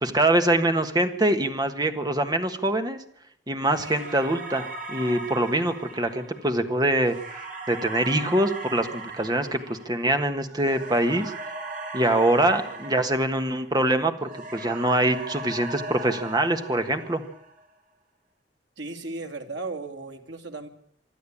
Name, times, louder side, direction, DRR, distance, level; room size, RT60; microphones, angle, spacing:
voice 1, 0.0-3.0 3.5-7.4 7.7-11.3 11.9-17.2, right 1 dB, 20° right, 7 dB, 1.5 m, -24 dB
sound 1, 3.7-13.9 14.2-17.6, right 2 dB, 50° right, 5.8 m, -38 dB
voice 2, 18.8-20.7, right 3 dB, 90° right, 4 dB, 2.6 m, -36 dB
25.5 x 12.0 x 8.6 m, 0.66 s
head